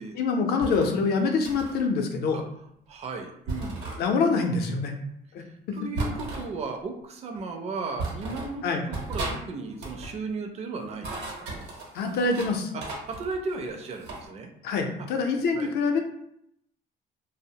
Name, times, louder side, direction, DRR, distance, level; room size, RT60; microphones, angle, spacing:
voice 1, 0.2-2.4 4.0-4.9 5.3-5.4 8.6-8.8 11.9-12.7 14.6-16.0, left 4 dB, 70° left, 4 dB, 0.5 m, -25 dB
sound 1, 0.6-0.9 1.4-1.8 3.5-4.0 6.0-6.5 7.4-7.5 8.0-8.5 8.9-9.4 9.7-10.1 10.8-12.5 12.8-14.2, right 2 dB, 80° right, 0.8 m, -35 dB
voice 2, 2.9-4.0 5.4-11.5 12.7-14.5 15.5-15.7, right 3 dB, 40° right, 4 dB, 0.4 m, -35 dB
2.6 x 2.0 x 2.7 m, 0.74 s
cardioid pair, 110°, 17 cm